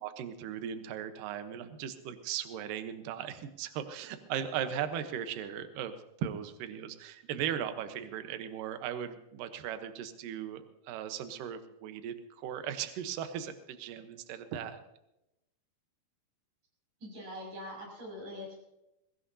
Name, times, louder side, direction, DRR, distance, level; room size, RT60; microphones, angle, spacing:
voice 1, 0.0-14.8, right 9 dB, 70° right, 9 dB, 2.3 m, -38 dB
voice 2, 17.0-18.6, left 1 dB, 50° right, -1 dB, 7.7 m, -43 dB
22.0 x 17.5 x 2.8 m, 0.90 s
omnidirectional pair, 4.9 m